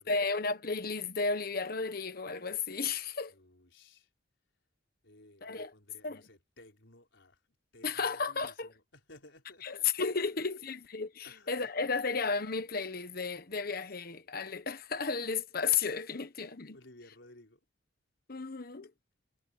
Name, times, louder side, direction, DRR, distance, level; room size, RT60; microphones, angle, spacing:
voice 1, 0.0-3.3 5.4-5.7 6.0-6.2 7.8-8.7 9.6-16.8 18.3-18.9, left 5 dB, 50° left, 1.2 m, -33 dB
voice 2, 3.3-4.1 5.0-7.4 7.7-9.9 10.5-10.8 11.2-11.5 16.4-17.6, left 1 dB, 75° left, 4.6 m, -57 dB
head